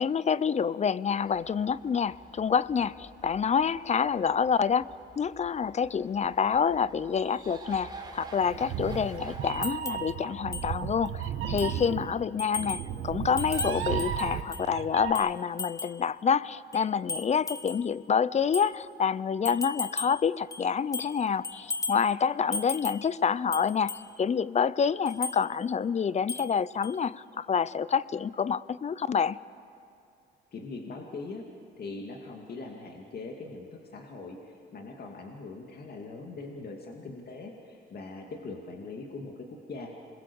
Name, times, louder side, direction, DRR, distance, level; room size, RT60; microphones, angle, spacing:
voice 1, 0.0-4.9 5.2-29.4, left 6 dB, 35° left, 19 dB, 0.5 m, -27 dB
sound 1, 1.3-9.5, right 3 dB, 20° right, 4.5 m, -48 dB
Meow, 8.4-15.1, right 9 dB, 90° right, 1.5 m, -34 dB
sound 2, 9.6-10.1 10.5-10.7 11.1-11.2 11.6-11.8 12.4-12.9 13.4-14.7 15.1-16.0 16.7-17.9 18.5-18.7 19.4-20.2 20.5-21.2 21.4-22.1 22.5-23.1 23.5-24.1 25.1-25.4 26.3-26.6 26.8-27.0, left 3 dB, 15° left, 1.1 m, -36 dB
voice 2, 30.5-31.5 31.8-39.9, left 3 dB, 50° left, 1 dB, 2.4 m, -41 dB
27.5 x 21.5 x 7.1 m, 2.5 s
cardioid pair, 90°, 20 cm